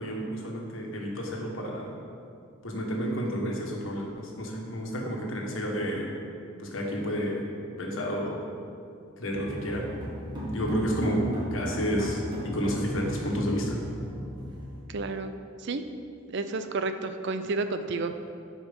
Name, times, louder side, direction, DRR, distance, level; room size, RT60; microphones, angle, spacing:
voice 1, 0.0-1.9 2.6-6.1 6.6-7.4 7.8-8.4 9.2-9.9 10.5-11.2 11.5-13.8, equal, 70° left, -1 dB, 1.5 m, -30 dB
sound 1, 9.3-14.8, equal, 20° right, 1.5 m, -35 dB
voice 2, 14.9-15.3 15.6-15.8 16.3-18.3, right 3 dB, 60° right, 9 dB, 0.5 m, -31 dB
10.5 x 5.0 x 5.4 m, 2.5 s
head